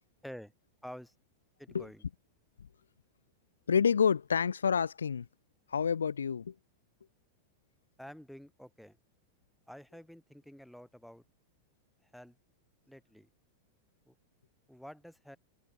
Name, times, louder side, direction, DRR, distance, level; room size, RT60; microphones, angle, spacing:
voice 1, 0.8-1.1 1.6-2.0 8.0-9.0 9.7-11.2 12.0-12.4 12.9-13.3 14.1-14.2 14.7-15.4, equal, ahead, 2.6 m, -49 dB
voice 2, 3.7-5.3 5.7-6.5, left 6 dB, 70° left, 0.8 m, -28 dB
figure-of-eight pair, 90°, 0 cm